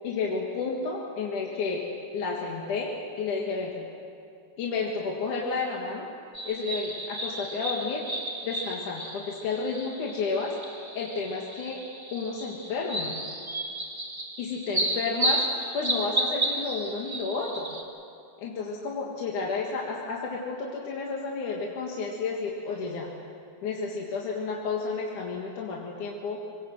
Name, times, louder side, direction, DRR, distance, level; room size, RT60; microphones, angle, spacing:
voice 1, 0.0-1.8 2.1-3.9 4.6-6.1 6.4-8.0 8.4-11.8 12.1-13.2 14.4-15.4 15.7-17.7 18.4-23.1 23.6-26.4, left 4 dB, 60° left, -2 dB, 3.1 m, -31 dB
sound 1, 6.3-17.8, right 1 dB, 20° right, 0.5 m, -33 dB
26.0 x 18.5 x 7.7 m, 2.5 s
omnidirectional pair, 4.3 m